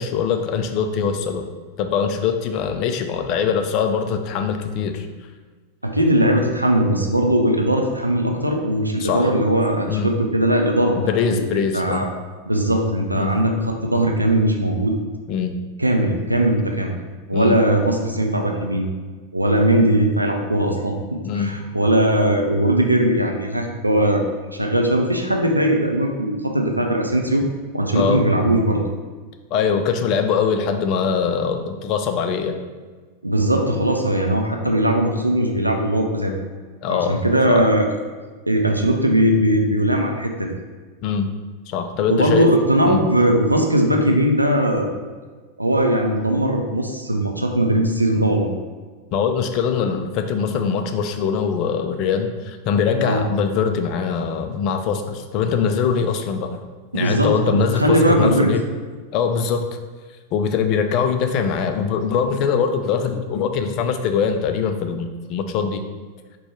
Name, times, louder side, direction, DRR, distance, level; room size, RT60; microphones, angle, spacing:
voice 1, 0.0-1.5 1.8-5.1 9.0-9.3 9.9-10.1 11.0-12.1 13.1-13.4 15.3-15.5 17.3-17.6 21.2-21.5 27.9-28.2 29.5-32.6 36.8-37.2 37.5-37.6 41.0-41.3 41.7-42.5 42.9-43.0 49.1-56.6 56.9-58.6 59.1-59.7 60.3-65.9, left 6 dB, 40° left, 7 dB, 0.3 m, -22 dB
voice 2, 5.8-11.4 11.7-12.1 12.5-15.0 15.8-16.9 17.3-18.9 19.3-24.2 24.5-27.4 27.7-28.8 33.2-36.3 36.9-37.9 38.5-40.5 42.1-44.9 45.6-48.5 53.0-53.2 56.9-58.5, right 1 dB, 85° right, 2 dB, 0.4 m, -19 dB
4.3 x 2.2 x 4.4 m, 1.4 s
figure-of-eight pair, 90°, 0 cm